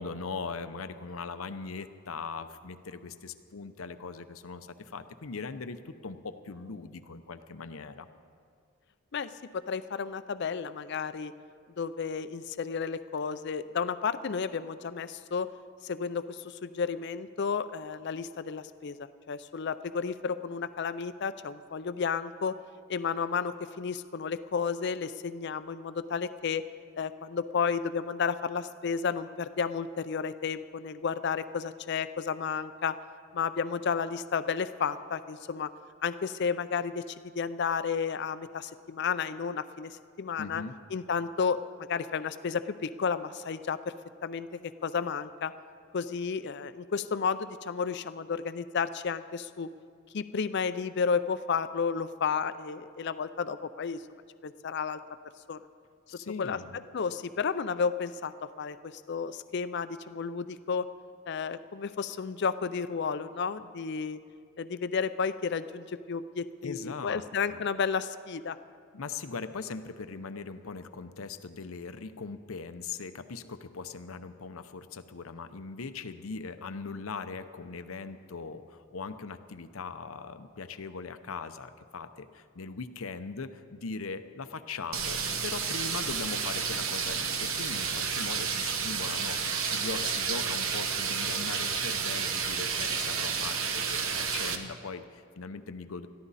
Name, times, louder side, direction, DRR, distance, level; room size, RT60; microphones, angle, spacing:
voice 1, 0.0-8.1 40.4-40.8 56.1-56.8 66.6-67.2 67.5-67.6 68.9-96.1, left 4 dB, 90° left, 10 dB, 0.7 m, -40 dB
voice 2, 9.1-11.3 11.8-15.5 15.8-22.6 22.9-26.6 26.9-32.9 33.3-35.7 36.0-40.6 40.9-43.8 44.2-45.5 45.9-49.7 50.1-54.0 54.4-55.0 55.5-55.6 56.4-56.6 56.9-60.9 61.3-64.2 64.6-68.6, left 6 dB, 55° left, 13 dB, 0.5 m, -32 dB
sound 1, 84.9-94.6, right 6 dB, 75° right, 1.2 m, -31 dB
21.0 x 14.0 x 4.1 m, 2.2 s
head